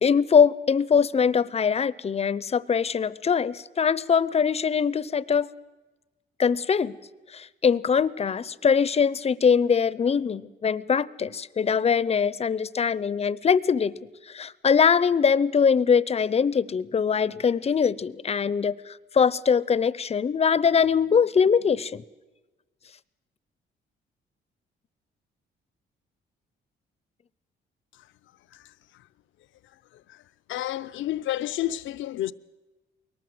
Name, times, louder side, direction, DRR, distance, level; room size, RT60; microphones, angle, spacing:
voice 1, 0.0-5.5 6.4-7.0 7.3-13.9 14.3-22.0, left 6 dB, 30° left, 0.7 m, -22 dB
voice 2, 30.5-32.3, left 13 dB, 75° left, 0.7 m, -29 dB
22.0 x 18.5 x 7.9 m
cardioid pair, 90°, 20 cm